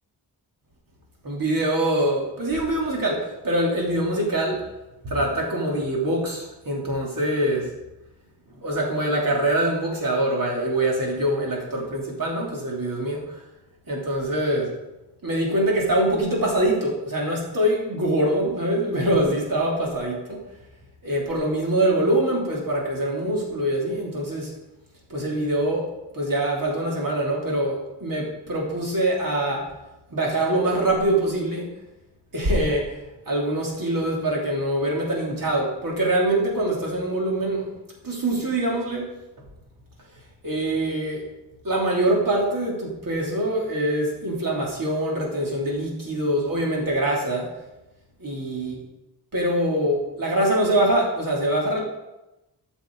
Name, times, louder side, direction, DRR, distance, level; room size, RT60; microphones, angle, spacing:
voice 1, 1.2-4.6 5.0-7.7 8.6-13.4 13.9-14.7 15.2-20.4 21.0-24.5 25.1-25.9 26.1-29.7 30.1-31.7 32.3-33.0 33.3-37.8 38.0-39.1 40.4-41.3 41.6-47.5 48.2-48.8 49.3-51.8, right 1 dB, 55° right, -3 dB, 3.1 m, -24 dB
12.5 x 6.3 x 4.7 m, 0.96 s
wide cardioid pair, 140°, 41 cm